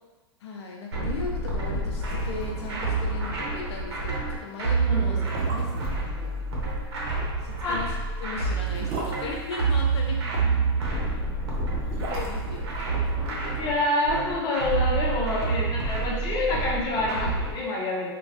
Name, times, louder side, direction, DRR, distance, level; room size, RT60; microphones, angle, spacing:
voice 1, 0.4-5.2 5.5-6.4 7.4-10.3 12.0-12.7 13.2-13.4, left 3 dB, 85° left, 0 dB, 0.4 m, -37 dB
sound 1, 0.9-17.5, right 3 dB, 80° right, 0.8 m, -28 dB
sound 2, 2.0-2.7 2.9-3.0 3.4-3.6 4.3-4.4 5.1-6.0 7.5-10.2 11.4-13.7 13.9-14.0, right 3 dB, 40° right, 0.6 m, -38 dB
voice 2, 4.9-5.3 7.6-7.8 13.4-18.1, left 2 dB, 30° left, -4 dB, 0.8 m, -27 dB
3.0 x 2.3 x 2.5 m, 1.2 s
hypercardioid pair, 130°, 14 cm